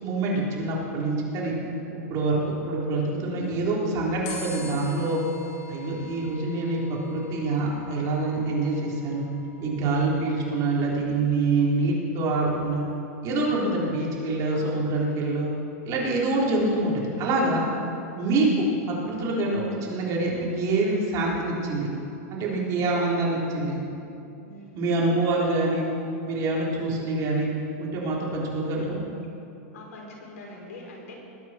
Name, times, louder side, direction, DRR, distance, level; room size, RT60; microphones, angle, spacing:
voice 1, 0.0-1.5 2.1-5.2 5.7-9.2 9.6-12.8 13.2-15.5 15.8-17.7 18.2-21.9 22.3-23.8 24.7-25.9 26.2-27.5 27.8-29.0, right 2 dB, 40° right, -4 dB, 3.9 m, -25 dB
sound 1, 4.2-10.7, left 3 dB, 50° left, 4.0 m, -45 dB
voice 2, 24.4-24.8 29.7-31.1, left 2 dB, 75° left, -1 dB, 3.9 m, -43 dB
20.5 x 9.3 x 4.5 m, 2.7 s
hypercardioid pair, 125°, 8 cm